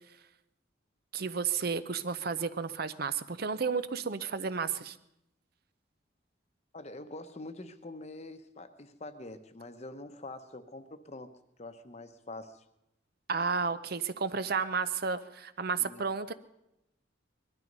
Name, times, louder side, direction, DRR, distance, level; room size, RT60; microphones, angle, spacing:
voice 1, 1.1-5.0 13.3-16.3, right 5 dB, 50° right, 13 dB, 0.6 m, -32 dB
voice 2, 6.7-11.3 11.6-12.6 15.8-16.0, left 2 dB, 35° left, 9 dB, 0.9 m, -45 dB
20.5 x 12.5 x 5.4 m, 0.85 s
head